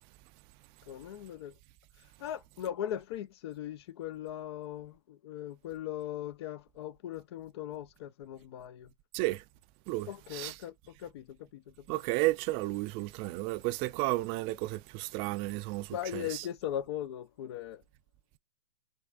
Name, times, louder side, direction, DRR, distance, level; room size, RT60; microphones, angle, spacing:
voice 1, 0.9-1.5 2.2-8.9 10.1-10.7 11.0-11.6 15.9-17.8, left 11 dB, 60° left, 0.7 m, -39 dB
voice 2, 9.1-9.4 9.9-10.5 11.9-16.5, right 19 dB, 40° right, 0.5 m, -33 dB
5.3 x 3.6 x 2.4 m
hypercardioid pair, 120°, 15 cm